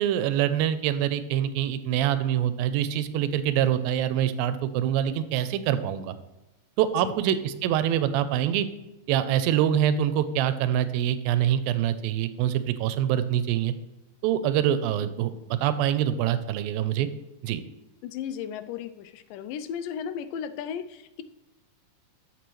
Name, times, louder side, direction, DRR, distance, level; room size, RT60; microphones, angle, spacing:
voice 1, 0.0-6.1 6.8-8.7 9.1-13.7 14.2-17.1 17.4-17.6, right 10 dB, 90° right, 12 dB, 2.4 m, -25 dB
voice 2, 18.0-21.2, left 8 dB, 80° left, 11 dB, 2.1 m, -35 dB
13.0 x 6.7 x 3.1 m, 1.0 s
omnidirectional pair, 4.1 m